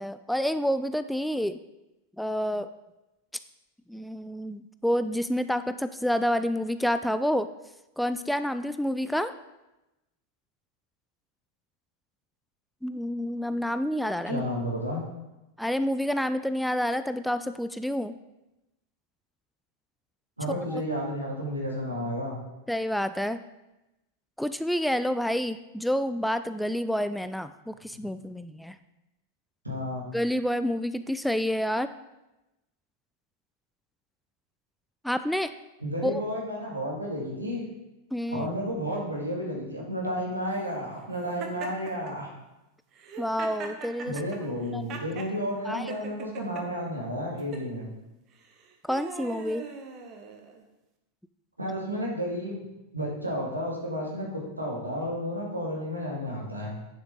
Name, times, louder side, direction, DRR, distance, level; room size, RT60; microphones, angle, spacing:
voice 1, 0.0-1.6 2.2-2.7 3.9-7.5 8.0-9.3 12.8-14.5 15.6-18.1 20.5-20.8 22.7-23.4 24.4-28.7 30.1-31.9 35.0-35.5 36.0-36.2 38.1-38.5 43.2-44.1 44.7-44.8 45.6-45.9 48.8-49.6, equal, ahead, 11 dB, 0.3 m, -28 dB
voice 2, 14.3-15.0 20.4-22.4 27.9-28.1 29.6-30.1 35.8-37.6 38.3-42.3 44.0-47.8 51.6-52.6 52.9-56.7, equal, 85° right, -3 dB, 2.2 m, -32 dB
Laughter, 41.4-42.1 42.9-45.3 45.9-46.6 47.4-47.7 48.4-50.6, right 5 dB, 35° right, 1.1 m, -40 dB
9.2 x 7.1 x 3.7 m, 0.97 s
figure-of-eight pair, 90°, 0 cm